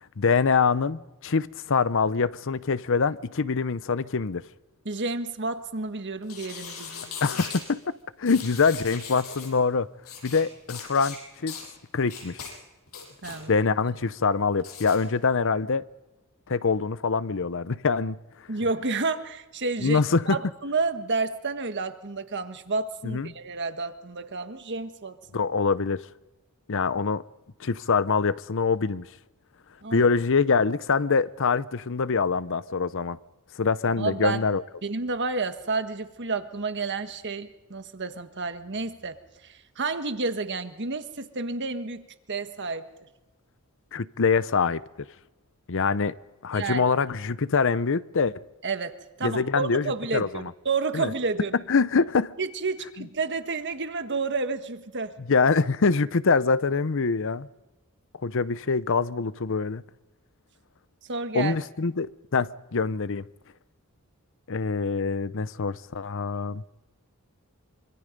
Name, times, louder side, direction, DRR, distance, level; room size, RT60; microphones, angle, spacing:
voice 1, 0.2-4.4 7.2-9.9 10.2-11.6 11.9-12.5 13.5-15.8 16.5-18.2 19.8-20.4 23.0-23.3 25.3-26.0 26.7-27.2 27.6-29.1 29.9-33.2 33.6-34.6 43.9-44.8 45.7-46.1 46.4-48.4 49.2-50.5 50.9-51.1 51.7-52.3 55.3-57.5 58.2-59.8 61.3-63.2 64.5-66.6, left 4 dB, 65° left, 0.7 m, -24 dB
voice 2, 4.8-7.2 13.2-13.5 18.5-25.1 29.8-30.0 34.0-34.5 34.8-39.2 39.4-42.9 46.5-46.9 48.6-51.5 52.4-55.1 61.1-61.5, right 4 dB, 55° right, 1.5 m, -30 dB
sound 1, 6.2-7.6 8.3-9.5 10.0-10.4 10.7-11.2 11.5-11.7 12.1-12.5 12.9-13.4 14.6-15.0, left 6 dB, 90° left, 6.8 m, -39 dB
26.0 x 25.0 x 5.3 m
head